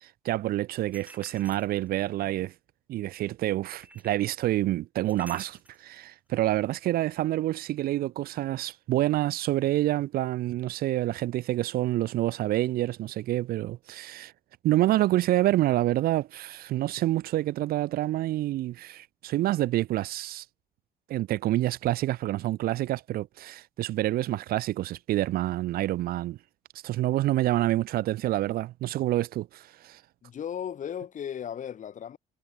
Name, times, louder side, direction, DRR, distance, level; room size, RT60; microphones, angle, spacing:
voice 1, 0.0-2.5 2.9-14.3 14.6-20.4 21.1-26.4 26.8-30.0, right 15 dB, 60° right, 0.5 m, -27 dB
sound 1, 0.9-2.1 3.8-4.3 5.1-5.8, right 2 dB, 10° right, 1.1 m, -50 dB
voice 2, 30.2-32.2, left 9 dB, 50° left, 3.9 m, -36 dB
cardioid pair, 110°, 17 cm